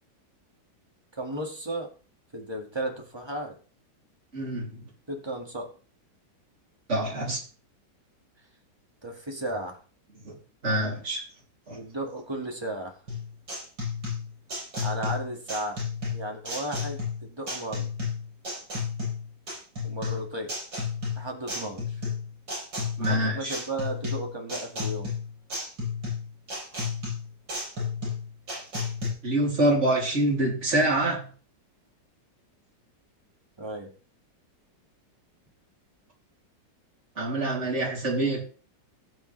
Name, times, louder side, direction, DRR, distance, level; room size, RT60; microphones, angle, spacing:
voice 1, 1.1-1.9 2.3-3.6 5.1-5.7 9.0-9.8 11.7-12.9 14.8-15.8 16.1-17.0 17.3-17.9 19.8-20.5 21.2-22.0 23.0-25.1 33.6-33.9, right 1 dB, 15° right, 2.0 m, -34 dB
voice 2, 4.3-4.8 6.9-7.4 10.2-10.3 10.6-11.2 11.7-11.8 23.0-23.5 29.2-31.2 37.2-38.4, right 1 dB, 40° right, 3.3 m, -26 dB
sound 1, 13.1-29.1, left 4 dB, 85° right, 7.3 m, -32 dB
17.5 x 7.1 x 3.3 m
omnidirectional pair, 2.0 m